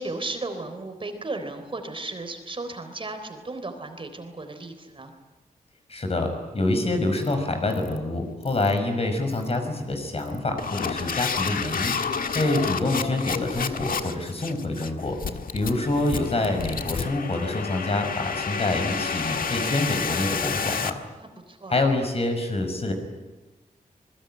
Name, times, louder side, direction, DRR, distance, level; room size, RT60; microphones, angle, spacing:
voice 1, 0.0-5.1 21.2-21.8, right 2 dB, 35° right, 7 dB, 3.8 m, -35 dB
voice 2, 5.9-15.2 15.5-20.9 21.7-22.9, left 2 dB, 45° left, 5 dB, 5.9 m, -26 dB
sound 1, 7.1-7.3 7.7-8.0 8.4-8.8 9.3-9.6 10.2-20.9, left 5 dB, 85° left, 1.6 m, -30 dB
27.0 x 21.0 x 9.1 m, 1.2 s
wide cardioid pair, 115°, 14 cm